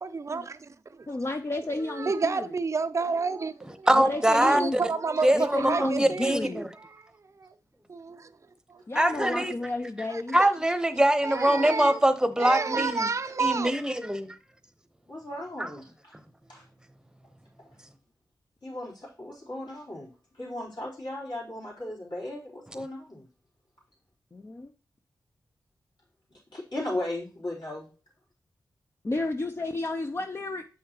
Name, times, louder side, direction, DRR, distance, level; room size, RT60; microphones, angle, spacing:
voice 1, 0.0-1.0 1.8-3.9 4.4-6.6 6.9-7.1 7.4-7.5 7.9-8.3 8.7-8.8 9.1-9.4 10.1-10.2 11.2-12.0 12.4-13.7, right 4 dB, 40° right, 0.5 m, -30 dB
voice 2, 1.1-2.5 3.9-4.8 5.3-6.6 8.9-10.4 24.3-24.7 29.0-30.7, left 2 dB, 30° left, 0.5 m, -31 dB
voice 3, 3.9-4.8 5.2-6.6 8.9-9.5 10.3-13.1 13.4-14.3 15.6-15.7, right 1 dB, 10° right, 0.9 m, -23 dB
voice 4, 15.1-16.1 16.5-16.6 18.6-20.1 20.3-23.3 26.5-27.9, left 1 dB, 65° left, 3.8 m, -36 dB
7.4 x 5.7 x 2.9 m
cardioid pair, 50°, 8 cm